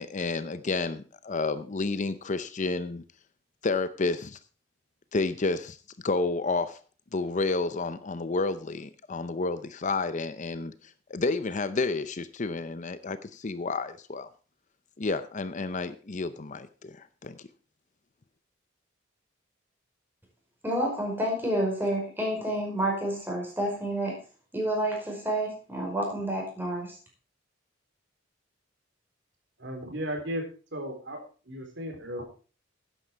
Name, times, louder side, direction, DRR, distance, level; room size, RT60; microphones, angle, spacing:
voice 1, 0.0-3.0 3.6-4.4 5.1-5.8 6.0-6.8 7.1-10.7 11.1-14.3 15.0-17.4, left 3 dB, 40° left, 13 dB, 0.6 m, -30 dB
voice 2, 20.6-24.1 24.5-27.0, right 1 dB, 10° right, -1 dB, 5.4 m, -29 dB
voice 3, 29.6-30.4 30.7-31.2 31.5-32.2, equal, 65° right, 3 dB, 4.0 m, -35 dB
12.0 x 9.9 x 4.6 m, 0.37 s
head